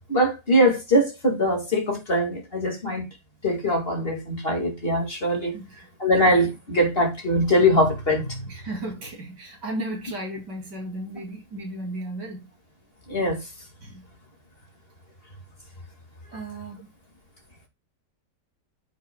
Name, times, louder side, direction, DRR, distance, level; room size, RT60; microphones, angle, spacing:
voice 1, 0.1-3.0 3.4-5.5 6.0-8.5 13.1-13.4, equal, 35° left, 2.3 m, -22 dB
voice 2, 8.5-12.5 13.8-14.1 16.3-16.9, right 1 dB, 70° right, 3.5 m, -35 dB
14.5 x 6.0 x 2.2 m
omnidirectional pair, 1.9 m